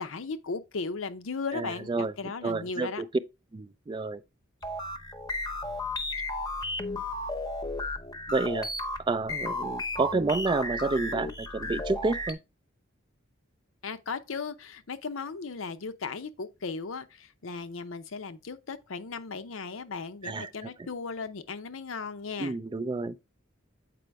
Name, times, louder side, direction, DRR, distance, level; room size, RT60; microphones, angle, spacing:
voice 1, 0.0-3.0 13.8-22.5, left 4 dB, 75° left, 0.7 m, -36 dB
voice 2, 1.5-2.1 2.4-3.1 3.5-4.2 8.3-8.7 9.0-12.4 20.2-20.9 22.4-23.2, right 3 dB, 25° right, 0.3 m, -30 dB
sound 1, 4.6-12.3, left 2 dB, 20° left, 0.8 m, -34 dB
7.6 x 4.9 x 3.4 m
head